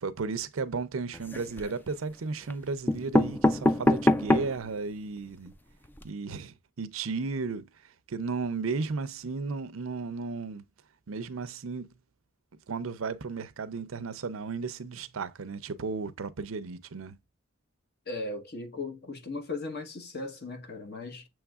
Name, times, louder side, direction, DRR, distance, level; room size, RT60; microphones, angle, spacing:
voice 1, 0.0-5.5 6.0-7.7 8.1-10.6 11.1-11.9 12.7-17.2, right 4 dB, 85° right, 0.6 m, -34 dB
sound 1, 1.1-1.8 2.5-2.6 2.9-4.7 5.2-5.3 5.5-5.6 5.8-6.0, left 1 dB, 10° left, 0.3 m, -25 dB
voice 2, 18.1-21.3, left 3 dB, 55° left, 1.2 m, -37 dB
7.1 x 3.1 x 2.3 m
head